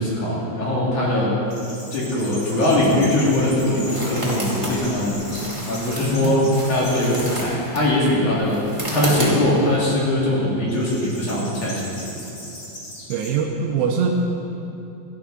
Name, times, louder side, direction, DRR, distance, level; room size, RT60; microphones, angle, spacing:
voice 1, 0.0-1.3 1.9-8.6 8.9-12.1, left 1 dB, 50° left, -6 dB, 3.0 m, -21 dB
sound 1, 1.5-7.4 8.0-8.5 10.7-13.3, left 1 dB, 25° left, 2.7 m, -38 dB
sound 2, 2.7-9.8, right 1 dB, 30° right, 0.5 m, -32 dB
voice 2, 6.2-6.6 13.1-14.1, right 6 dB, 80° right, 1 dB, 2.8 m, -22 dB
17.0 x 12.0 x 3.8 m, 2.8 s
omnidirectional pair, 5.1 m